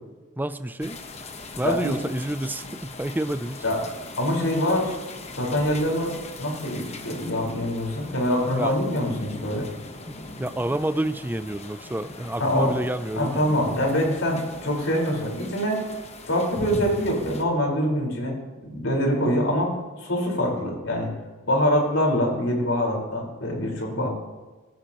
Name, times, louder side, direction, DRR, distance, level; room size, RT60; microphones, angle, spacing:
voice 1, 0.4-1.0 1.6-3.6 8.5-8.7 10.1-13.4 24.0-24.1, right 1 dB, 10° right, 11 dB, 0.4 m, -29 dB
sound 1, 0.8-17.4, left 2 dB, 30° left, 1.1 m, -40 dB
voice 2, 4.2-4.9 5.3-9.7 12.4-12.7 13.1-15.8 16.3-18.3 18.6-19.7 20.0-21.1 21.5-24.1, equal, 70° left, -1 dB, 4.8 m, -24 dB
19.0 x 16.0 x 3.0 m, 1.3 s
head